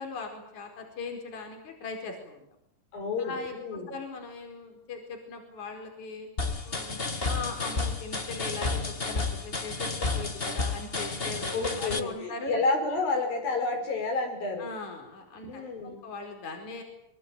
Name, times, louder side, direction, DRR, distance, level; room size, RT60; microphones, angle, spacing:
voice 1, 0.0-2.5 3.2-6.3 6.6-12.6 14.6-16.8, left 3 dB, 55° left, 3 dB, 6.0 m, -39 dB
voice 2, 2.9-3.9 11.2-14.7 15.5-16.0, left 3 dB, 85° left, 3 dB, 7.5 m, -30 dB
sound 1, 6.4-12.0, left 3 dB, 25° left, 1.3 m, -31 dB
26.0 x 24.0 x 9.1 m, 0.78 s
omnidirectional pair, 4.0 m